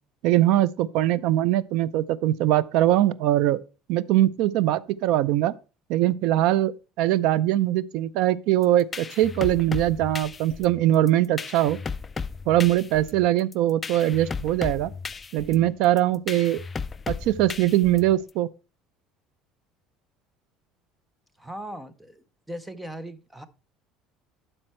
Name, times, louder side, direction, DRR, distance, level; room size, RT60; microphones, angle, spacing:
voice 1, 0.2-3.6 3.9-5.5 5.9-6.7 7.0-11.8 12.5-14.9 15.3-16.6 17.1-18.5, right 13 dB, 60° right, 0.4 m, -22 dB
sound 1, 8.6-18.3, left 5 dB, 15° left, 0.3 m, -35 dB
voice 2, 21.4-23.5, right 1 dB, 5° right, 0.7 m, -39 dB
12.0 x 4.5 x 4.4 m
cardioid pair, 170°, 0 cm